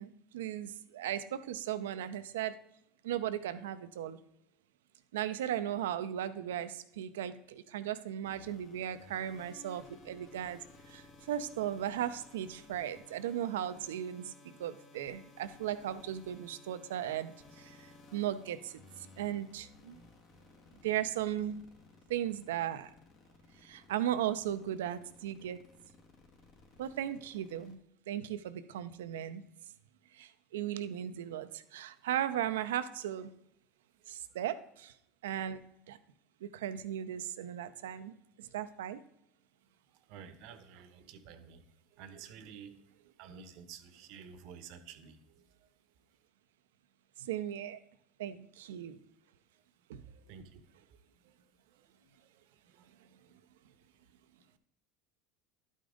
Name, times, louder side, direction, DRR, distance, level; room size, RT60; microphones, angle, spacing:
voice 1, 0.0-2.6 3.0-4.2 5.1-10.6 10.9-14.3 14.6-18.8 19.2-20.0 20.8-21.7 22.1-22.9 23.6-25.6 26.8-27.8 28.1-29.4 30.1-33.3 34.1-34.9 35.2-36.0 36.4-39.0 47.2-47.8 48.2-49.0 49.9-50.0, right 11 dB, 85° right, 12 dB, 0.5 m, -37 dB
sound 1, 8.2-27.7, left 3 dB, 55° left, 1.5 m, -58 dB
voice 2, 40.1-41.6 41.9-45.4 50.1-50.6 52.7-52.9, right 7 dB, 65° right, 11 dB, 0.9 m, -51 dB
11.5 x 5.1 x 3.8 m, 0.77 s
hypercardioid pair, 90°, 0 cm